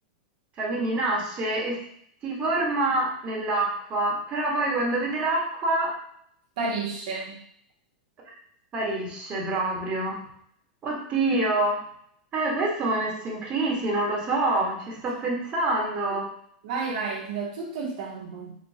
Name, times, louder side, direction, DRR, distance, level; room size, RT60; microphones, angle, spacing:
voice 1, 0.6-1.8 2.2-5.9 8.7-10.2 10.8-11.8 12.3-16.3, right 2 dB, 30° right, -2 dB, 1.3 m, -26 dB
voice 2, 6.6-7.4 16.6-18.5, right 4 dB, 70° right, -2 dB, 0.8 m, -31 dB
4.1 x 3.0 x 2.8 m, 0.68 s
hypercardioid pair, 125°, 4 cm